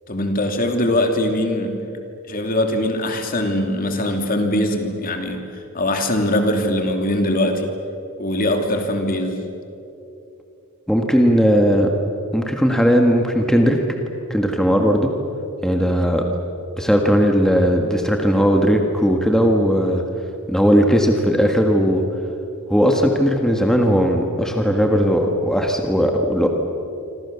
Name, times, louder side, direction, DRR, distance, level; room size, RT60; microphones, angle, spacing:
voice 1, 0.1-1.8 2.3-5.4 5.7-7.7 8.2-9.4, left 1 dB, 40° left, 4 dB, 3.0 m, -21 dB
voice 2, 10.9-11.9 12.3-13.8 14.3-15.1 15.6-16.2 16.8-20.0 20.5-22.0 22.7-26.5, equal, 5° left, 2 dB, 1.6 m, -17 dB
27.5 x 26.0 x 7.1 m, 2.8 s
head